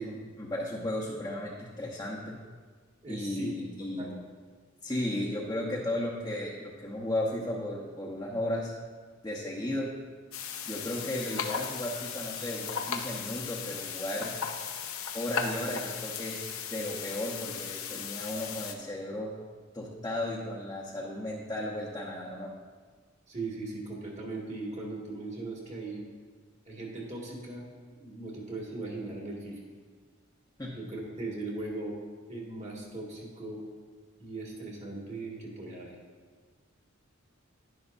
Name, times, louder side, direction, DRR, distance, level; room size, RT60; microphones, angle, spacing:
voice 1, 0.0-2.4 3.1-4.1 4.8-8.7 9.2-9.9 10.6-14.3 15.1-16.4 16.7-19.3 19.7-22.5 30.6-30.7, left 1 dB, 15° left, -5 dB, 1.0 m, -35 dB
voice 2, 3.0-3.5 3.8-4.1 23.3-26.0 26.6-27.7 28.0-29.6 30.7-32.0 32.3-33.6 34.2-36.0, right 2 dB, 35° right, -2 dB, 2.1 m, -39 dB
sound 1, 10.3-18.7, left 7 dB, 80° left, 0.8 m, -37 dB
11.0 x 10.5 x 2.7 m, 1.5 s
head